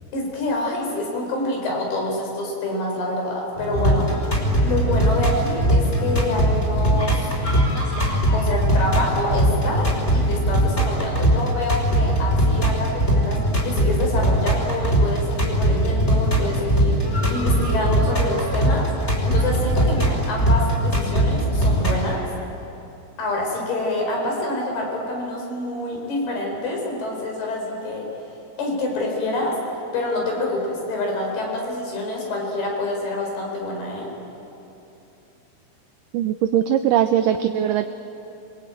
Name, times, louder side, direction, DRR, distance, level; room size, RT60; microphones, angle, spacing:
voice 1, 0.1-4.2 4.6-7.3 8.3-22.2 23.2-28.1 28.6-29.5 29.9-34.1, left 2 dB, 80° left, 0 dB, 6.3 m, -27 dB
sound 1, 3.6-22.0, right 1 dB, 15° left, 5.1 m, -20 dB
voice 2, 36.1-37.9, right 10 dB, 75° right, 9 dB, 2.1 m, -20 dB
28.5 x 22.0 x 9.0 m, 2.9 s
omnidirectional pair, 4.5 m